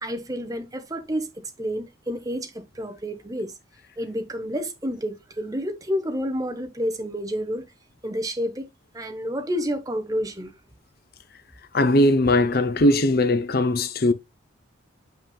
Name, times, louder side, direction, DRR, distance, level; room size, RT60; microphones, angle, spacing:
voice 1, 0.0-3.5 4.0-7.7 8.0-8.7 8.9-10.5, equal, 20° right, 1.1 m, -29 dB
voice 2, 11.7-14.1, left 1 dB, 50° left, 0.6 m, -19 dB
7.4 x 5.6 x 2.3 m
head